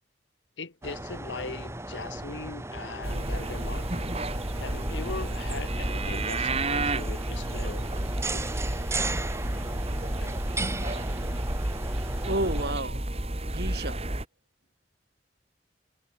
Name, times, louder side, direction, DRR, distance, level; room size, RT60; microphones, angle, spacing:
voice 1, 0.6-3.9 4.6-7.9 8.3-8.5 10.2-10.4, left 3 dB, 80° left, 1.5 m, -39 dB
sound 1, 0.8-12.7, right 2 dB, 15° right, 2.5 m, -36 dB
sound 2, 3.0-14.2, right 1 dB, 35° right, 2.6 m, -31 dB
voice 2, 12.2-13.0 13.4-14.0, right 1 dB, 60° right, 4.9 m, -31 dB
head